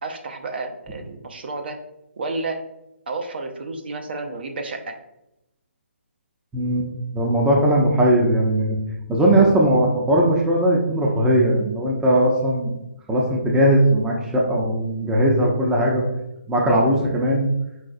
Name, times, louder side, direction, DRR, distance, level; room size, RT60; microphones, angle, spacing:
voice 1, 0.0-1.8 2.2-2.6 3.1-4.9, right 3 dB, 55° right, 5 dB, 0.7 m, -31 dB
voice 2, 6.5-6.9 7.1-8.8 9.1-12.7 13.1-16.0 16.5-17.5, right 1 dB, 10° right, -2 dB, 0.6 m, -19 dB
4.9 x 3.8 x 2.5 m, 0.87 s
figure-of-eight pair, 140°, 7 cm